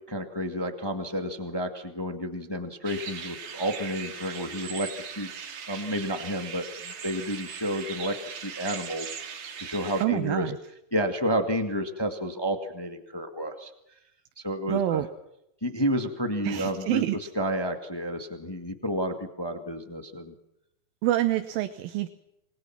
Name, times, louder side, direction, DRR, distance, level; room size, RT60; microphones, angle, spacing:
voice 1, 0.1-4.9 5.1-5.3 5.7-8.1 8.4-9.1 9.6-10.4 10.9-13.7 14.4-15.0 15.6-17.0 17.3-20.3, equal, 25° left, 6 dB, 0.5 m, -30 dB
sound 1, 2.9-10.1, right 7 dB, 60° right, 3.6 m, -39 dB
voice 2, 10.0-10.6 14.7-15.1 16.4-17.3 21.0-22.1, right 14 dB, 80° right, 9 dB, 2.7 m, -27 dB
28.0 x 21.0 x 6.0 m, 0.82 s
omnidirectional pair, 4.2 m